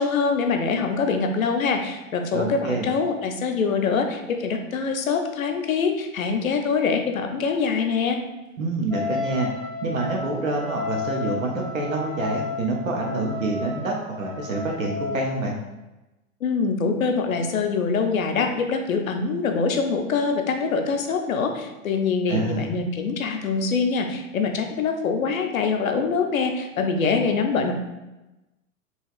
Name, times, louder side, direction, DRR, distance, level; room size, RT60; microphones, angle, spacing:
voice 1, 0.0-8.2 16.4-27.7, left 5 dB, 80° left, 5 dB, 0.5 m, -24 dB
voice 2, 2.3-2.9 8.6-9.5 9.8-15.6 22.3-22.7, right 2 dB, 70° right, 0 dB, 0.6 m, -27 dB
Wind instrument woodwind instrument, 8.9-15.5, left 3 dB, ahead, 0.4 m, -32 dB
2.9 x 2.7 x 2.3 m, 1.0 s
figure-of-eight pair, 100°, 41 cm